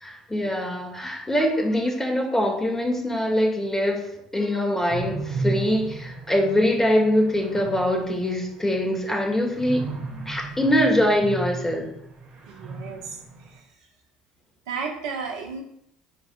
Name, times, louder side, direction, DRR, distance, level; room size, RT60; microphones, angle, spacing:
voice 1, 0.0-9.9 10.3-11.9, equal, 10° left, 1 dB, 2.5 m, -23 dB
sound 1, 4.9-13.6, right 3 dB, 50° right, 3.1 m, -35 dB
voice 2, 12.5-13.7 14.7-15.6, right 5 dB, 70° right, 1 dB, 1.7 m, -34 dB
14.0 x 4.8 x 2.6 m, 0.72 s
hypercardioid pair, 65°, 3 cm